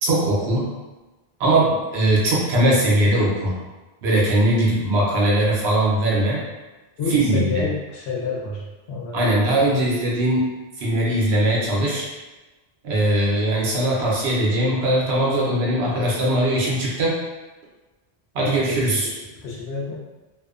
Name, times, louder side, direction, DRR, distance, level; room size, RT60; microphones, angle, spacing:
voice 1, 0.0-0.7 1.4-3.5 4.0-6.4 7.1-7.7 9.1-10.5 10.8-12.1 12.8-17.2 18.3-19.1, right 1 dB, 90° right, -4 dB, 1.0 m, -20 dB
voice 2, 7.0-8.6 8.9-9.6 18.4-18.8 19.4-20.0, left 4 dB, 85° left, -3 dB, 0.9 m, -28 dB
2.6 x 2.1 x 2.4 m, 1.2 s
omnidirectional pair, 1.0 m